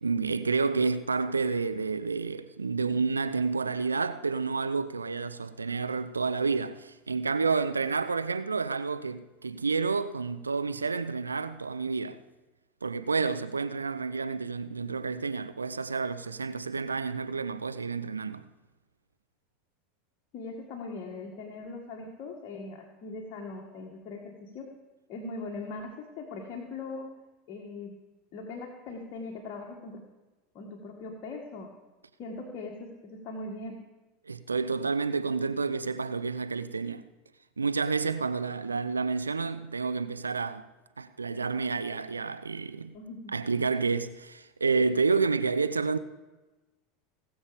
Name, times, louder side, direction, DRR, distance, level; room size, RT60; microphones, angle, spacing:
voice 1, 0.0-12.2 12.8-18.4 34.3-37.0 37.6-40.7 41.0-42.9 43.3-46.0, right 4 dB, 90° right, 0.5 m, -29 dB
voice 2, 20.3-24.7 25.1-27.1 27.5-27.9 28.3-30.0 30.5-31.7 32.2-33.8 42.9-43.4, left 3 dB, 45° left, 1.7 m, -40 dB
19.0 x 7.2 x 5.1 m
figure-of-eight pair, 85°, 0 cm